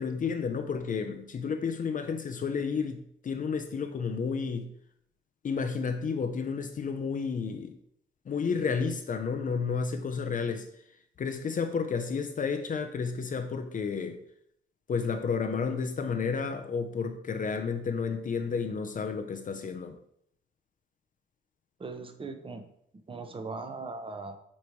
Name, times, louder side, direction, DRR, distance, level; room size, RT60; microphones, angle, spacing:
voice 1, 0.0-3.0 3.2-4.7 5.4-7.7 8.3-10.7 11.2-14.2 14.9-19.9, left 5 dB, 40° left, 6 dB, 0.7 m, -31 dB
voice 2, 21.8-22.7 23.1-24.4, right 3 dB, 25° right, 6 dB, 1.0 m, -39 dB
8.5 x 3.3 x 4.6 m, 0.72 s
cardioid pair, 90°, 20 cm